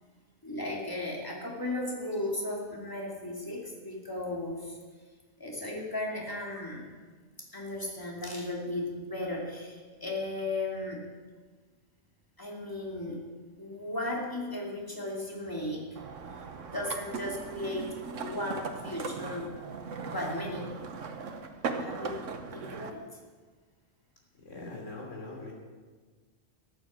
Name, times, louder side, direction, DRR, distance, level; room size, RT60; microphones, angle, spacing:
voice 1, 0.4-4.8 5.4-6.9 7.4-11.0 12.4-13.2 13.6-15.9 16.7-19.5 20.1-20.7 21.8-22.2 22.5-23.0, left 1 dB, 15° left, -2 dB, 2.6 m, -35 dB
sound 1, 15.9-22.9, right 4 dB, 90° right, 1.4 m, -38 dB
voice 2, 24.4-25.5, left 2 dB, 85° left, -1 dB, 3.4 m, -41 dB
14.0 x 9.1 x 7.4 m, 1.5 s
omnidirectional pair, 1.3 m